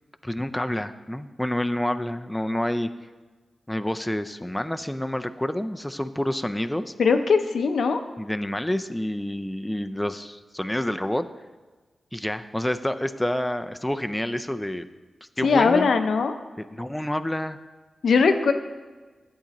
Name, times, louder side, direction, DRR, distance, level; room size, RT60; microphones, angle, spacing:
voice 1, 0.2-2.9 3.7-6.9 8.2-11.3 12.1-14.9 15.4-15.9 16.6-17.6, left 1 dB, 10° left, 9 dB, 0.4 m, -28 dB
voice 2, 7.0-8.0 15.4-16.4 18.0-18.5, left 5 dB, 80° left, 7 dB, 0.6 m, -20 dB
11.5 x 8.0 x 3.0 m, 1.3 s
cardioid pair, 80°, 0 cm